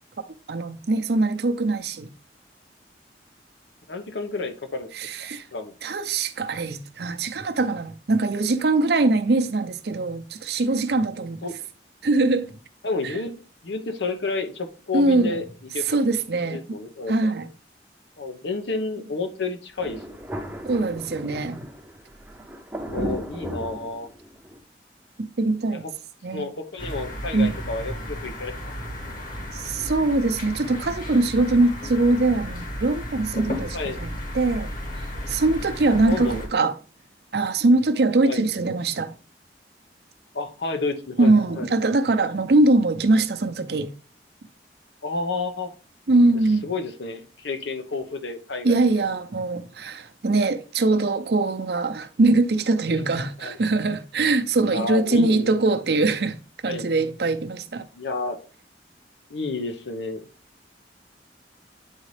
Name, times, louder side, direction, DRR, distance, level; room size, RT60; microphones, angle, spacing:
voice 1, 0.5-2.1 4.9-5.5 5.8-11.4 12.0-12.5 13.0-13.1 14.9-15.4 15.9-16.8 17.1-17.5 20.6-21.7 23.0-23.2 25.4-25.8 26.2-26.5 27.3-27.5 29.5-34.7 35.3-36.7 37.3-39.2 41.2-43.9 46.1-46.7 48.6-56.4 56.6-57.9, right 2 dB, 60° right, 0.6 m, -22 dB
voice 2, 3.9-4.9 5.5-5.7 11.4-11.6 12.8-15.4 15.7-16.0 16.4-17.3 18.2-20.2 22.8-24.1 25.7-25.9 26.3-28.8 33.7-34.0 35.9-36.7 38.2-38.4 40.3-41.7 45.0-45.7 46.6-48.8 52.9-53.1 53.4-53.6 54.7-55.5 56.6-56.9 57.9-58.4 59.3-60.3, left 3 dB, 90° left, 1.0 m, -30 dB
Thunder, 19.8-24.6, equal, 10° right, 0.6 m, -36 dB
sound 1, 26.8-36.5, equal, 50° left, 1.5 m, -34 dB
9.1 x 4.0 x 3.3 m
head